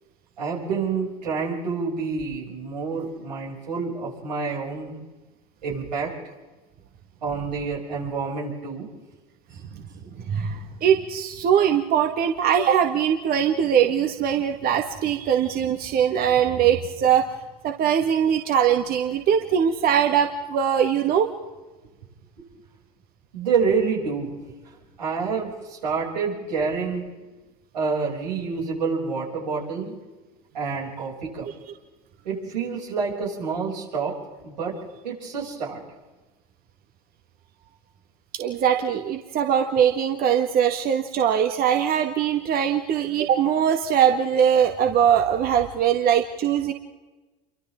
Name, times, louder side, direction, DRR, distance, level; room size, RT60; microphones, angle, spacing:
voice 1, 0.4-5.0 5.6-6.1 7.2-8.9 9.5-9.6 22.4-22.5 23.3-24.4 24.7-27.1 27.7-29.9 30.5-31.5 32.2-34.1 34.4-34.7 35.0-35.8, right 5 dB, 85° right, -3 dB, 7.2 m, -28 dB
voice 2, 10.2-17.3 17.6-21.3 38.3-46.7, right 8 dB, 45° right, 5 dB, 1.7 m, -21 dB
28.5 x 24.5 x 3.8 m, 1.2 s
hypercardioid pair, 85°, 21 cm